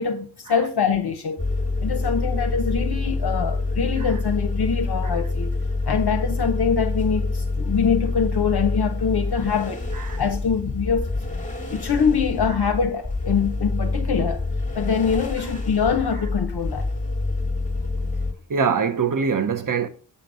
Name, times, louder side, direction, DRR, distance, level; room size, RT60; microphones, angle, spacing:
voice 1, 0.0-1.5 1.8-5.6 5.8-9.8 10.2-11.1 11.7-14.4 14.7-16.9, left 6 dB, 55° left, 0.7 m, -24 dB
sound 1, 1.4-18.3, left 3 dB, 15° left, 1.2 m, -26 dB
voice 2, 18.5-19.9, right 6 dB, 40° right, 0.8 m, -23 dB
7.2 x 3.9 x 4.7 m
cardioid pair, 55°, 48 cm